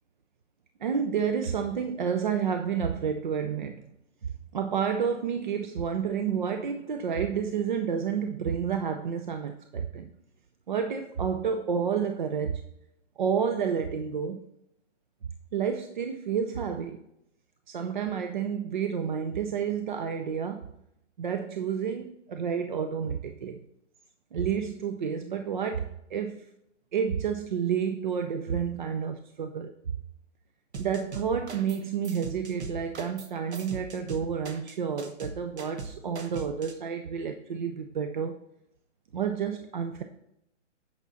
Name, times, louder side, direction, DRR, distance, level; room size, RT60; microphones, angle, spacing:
voice 1, 0.8-3.8 4.5-10.1 10.7-12.6 13.2-14.4 15.5-17.0 17.7-20.6 21.2-23.6 24.3-26.4 26.9-29.7 30.8-38.4 39.1-40.0, right 7 dB, 40° right, 7 dB, 0.5 m, -30 dB
sound 1, 30.7-31.8 32.0-36.7, right 4 dB, 60° right, 1.4 m, -40 dB
8.8 x 5.7 x 4.1 m, 0.79 s
hypercardioid pair, 160°, 37 cm